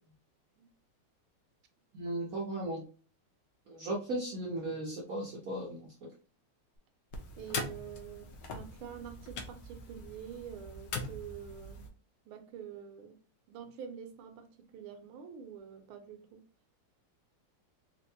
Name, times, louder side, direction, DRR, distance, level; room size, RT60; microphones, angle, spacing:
voice 1, 1.9-2.8 3.7-5.9, right 1 dB, 65° right, -2 dB, 0.9 m, -36 dB
sound 1, 7.1-11.9, left 3 dB, 70° left, 1.1 m, -42 dB
voice 2, 7.3-11.9 12.3-13.2 13.5-16.4, right 8 dB, 80° right, 6 dB, 1.6 m, -47 dB
4.3 x 2.5 x 2.7 m, 0.37 s
omnidirectional pair, 2.4 m